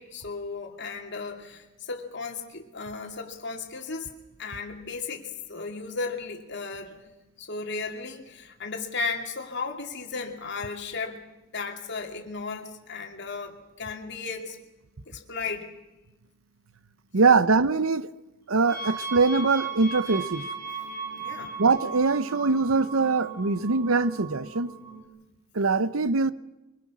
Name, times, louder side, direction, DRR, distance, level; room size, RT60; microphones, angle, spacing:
voice 1, 0.0-4.1 4.4-7.0 7.4-11.3 11.5-14.6 15.1-15.7 21.1-21.6, left 4 dB, 55° left, 2.7 m, -35 dB
voice 2, 17.1-18.1 18.5-20.5 21.6-24.7 25.5-26.3, right 4 dB, 85° right, 0.9 m, -22 dB
sound 1, 18.6-25.0, right 5 dB, 40° right, 3.4 m, -37 dB
24.5 x 22.0 x 6.2 m
head